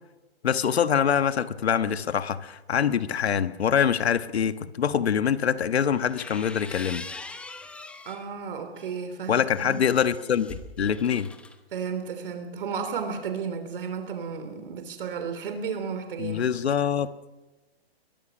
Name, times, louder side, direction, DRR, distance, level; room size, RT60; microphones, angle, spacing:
voice 1, 0.4-7.0 9.3-11.3 16.2-17.1, left 8 dB, 75° left, 12 dB, 1.4 m, -24 dB
sound 1, 5.9-8.3 8.7-11.6, left 3 dB, 5° left, 0.8 m, -43 dB
voice 2, 8.1-9.8 11.7-16.4, right 6 dB, 55° right, 8 dB, 3.3 m, -33 dB
22.5 x 21.5 x 6.1 m, 1.1 s
hypercardioid pair, 150°, 32 cm